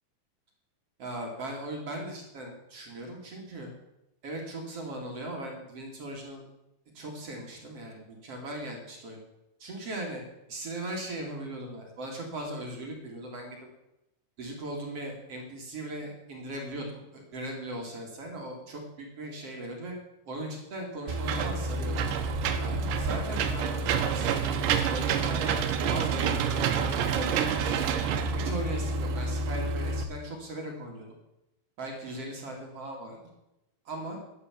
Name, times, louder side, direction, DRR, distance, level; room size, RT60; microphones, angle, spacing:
voice 1, 1.0-3.7 4.2-6.4 6.9-9.2 9.6-10.2 10.5-13.6 14.4-19.9 20.3-22.0 22.6-24.6 24.8-25.6 25.9-28.0 28.4-31.1 31.8-33.2 33.8-34.2, right 1 dB, 40° right, 0 dB, 2.5 m, -38 dB
Engine / Mechanisms, 21.1-30.0, right 5 dB, 75° right, 3.3 m, -28 dB
11.5 x 10.0 x 7.3 m, 0.90 s
omnidirectional pair, 5.3 m